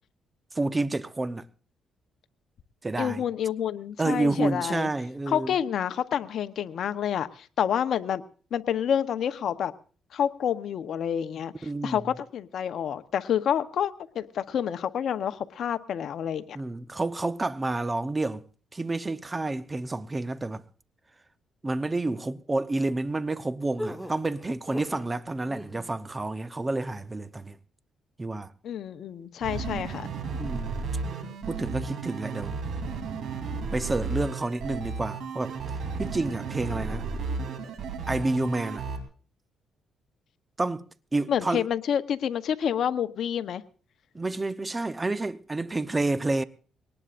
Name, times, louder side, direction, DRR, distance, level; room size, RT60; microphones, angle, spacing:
voice 1, 0.5-1.5 2.8-3.2 4.0-5.6 11.6-12.0 16.5-18.4 18.7-20.6 21.6-27.6 28.2-28.5 30.4-30.8 31.5-32.6 33.7-37.1 38.1-38.8 40.6-41.7 44.1-46.4, right 2 dB, 20° right, 0.8 m, -29 dB
voice 2, 3.0-4.9 5.3-8.2 8.5-9.7 10.1-16.6 28.6-30.1 41.3-43.6, left 9 dB, 65° left, 0.9 m, -28 dB
sound 1, 23.8-25.1 25.5-25.9, equal, 5° right, 1.9 m, -38 dB
sound 2, 29.4-39.0, right 4 dB, 70° right, 3.3 m, -33 dB
22.5 x 19.0 x 2.6 m
cardioid pair, 90°, 0 cm